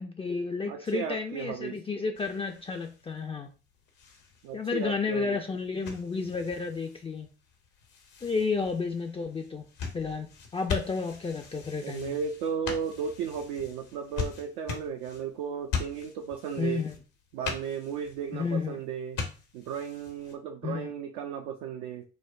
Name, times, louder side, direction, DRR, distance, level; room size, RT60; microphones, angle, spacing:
voice 1, 0.0-3.5 4.5-7.3 8.2-9.6 9.9-10.3 10.5-12.2 16.6-16.9 18.3-18.8 20.6-20.9, left 4 dB, 15° left, 4 dB, 0.4 m, -31 dB
voice 2, 0.7-1.8 4.4-5.4 11.8-16.8 17.3-19.2 19.5-22.0, right 7 dB, 65° right, 4 dB, 0.5 m, -35 dB
sound 1, 2.1-20.3, left 5 dB, 60° left, 0.8 m, -41 dB
4.6 x 2.0 x 2.5 m, 0.35 s
figure-of-eight pair, 40°, 34 cm